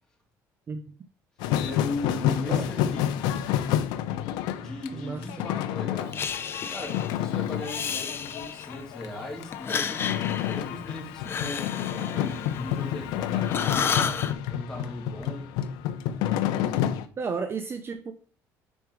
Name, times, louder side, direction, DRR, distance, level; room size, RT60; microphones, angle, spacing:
sound 1, 1.4-17.1, left 11 dB, 85° left, 0.6 m, -29 dB
voice 1, 1.6-3.3 4.6-6.2 6.7-15.5, left 2 dB, 10° left, 2.5 m, -38 dB
voice 2, 4.9-5.5 17.2-18.1, right 5 dB, 35° right, 0.6 m, -33 dB
Breathing, 6.1-7.2 7.6-8.8 9.5-13.1 13.4-14.3, left 7 dB, 35° left, 0.6 m, -32 dB
5.3 x 4.5 x 4.6 m
cardioid pair, 115°, 7 cm